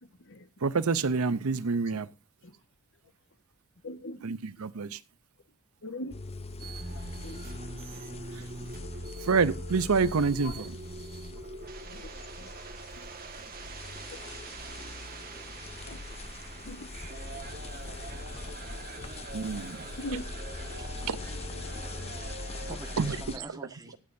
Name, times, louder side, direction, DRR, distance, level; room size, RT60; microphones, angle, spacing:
voice 1, 0.0-0.5 1.7-1.8 2.4-2.6 3.8-4.3 4.9-5.0 5.8-6.2 6.9-7.8 8.4-8.7 10.0-10.1 10.4-10.7 11.0-13.1 13.6-13.7 14.1-14.3 14.9-15.0 15.5-16.0 16.6-17.0 18.1-18.3 19.7-20.3, left 1 dB, 60° left, 1.4 m, -44 dB
voice 2, 0.6-2.1 4.2-5.0 8.3-8.5 9.2-10.7 19.3-19.9 21.1-21.2 23.0-23.4, right 4 dB, 75° right, 0.7 m, -28 dB
sound 1, 6.1-23.4, left 3 dB, 30° left, 0.7 m, -42 dB
sound 2, 6.6-23.2, right 3 dB, 45° right, 1.7 m, -44 dB
voice 3, 20.8-21.1 22.4-24.0, right 2 dB, 15° right, 1.5 m, -46 dB
25.0 x 8.6 x 2.6 m
head